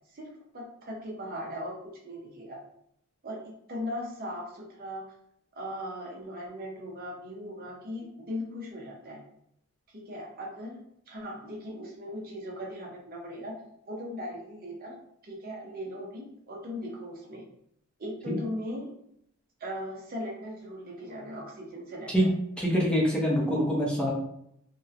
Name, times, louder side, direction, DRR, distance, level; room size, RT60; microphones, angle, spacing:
voice 1, 0.1-1.8 2.0-2.6 3.2-3.4 3.7-5.1 5.6-9.2 9.9-13.5 13.9-15.0 15.2-17.4 18.0-18.9 19.6-22.3, equal, 45° right, -2 dB, 0.6 m, -38 dB
voice 2, 22.6-24.1, equal, 5° left, -4 dB, 0.5 m, -25 dB
2.9 x 2.0 x 2.4 m, 0.73 s
head